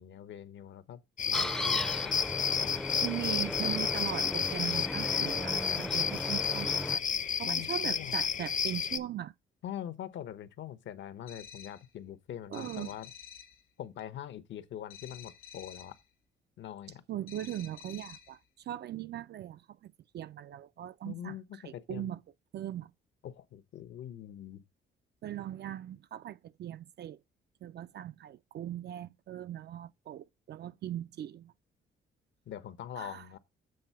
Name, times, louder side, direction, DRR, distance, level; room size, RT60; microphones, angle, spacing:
voice 1, 0.0-2.1 2.5-2.8 7.4-8.3 9.6-13.1 13.8-15.9 16.6-17.0 21.0-22.1 23.2-24.6 32.5-33.4, left 10 dB, 70° left, 0.9 m, -43 dB
sound 1, 1.2-9.0, left 7 dB, 40° left, 0.7 m, -31 dB
sound 2, 1.3-7.0, left 1 dB, 5° left, 0.5 m, -37 dB
voice 2, 3.0-7.0 7.4-9.3 12.5-12.9 17.1-21.4 21.6-22.2 22.5-22.9 25.2-27.2 27.6-31.5 33.0-33.3, right 12 dB, 55° right, 0.4 m, -39 dB
sound 3, 11.3-11.9 12.5-13.6 14.9-16.0 17.3-18.4, left 9 dB, 90° left, 1.3 m, -50 dB
7.8 x 4.0 x 5.6 m
cardioid pair, 90°, 20 cm